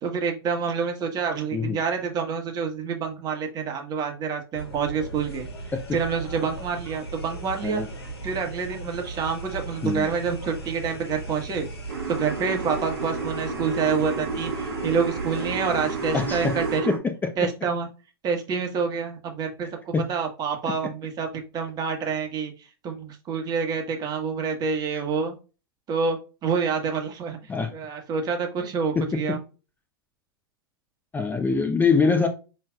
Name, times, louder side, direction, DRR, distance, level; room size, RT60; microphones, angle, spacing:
voice 1, 0.0-5.5 5.9-7.8 8.2-11.7 12.1-14.5 14.8-16.9 17.4-17.9 18.2-22.5 22.8-25.3 25.9-27.4 27.7-29.4, right 6 dB, 30° right, 1.2 m, -27 dB
sound 1, 4.5-16.8, right 2 dB, 85° left, 1.3 m, -37 dB
sound 2, 11.9-17.0, right 3 dB, 70° right, 1.1 m, -31 dB
voice 2, 16.1-16.6 16.9-17.3 19.9-20.1 27.5-27.7 29.0-29.4 31.1-32.3, left 4 dB, 15° left, 0.7 m, -24 dB
5.7 x 3.2 x 2.3 m
hypercardioid pair, 105°, 13 cm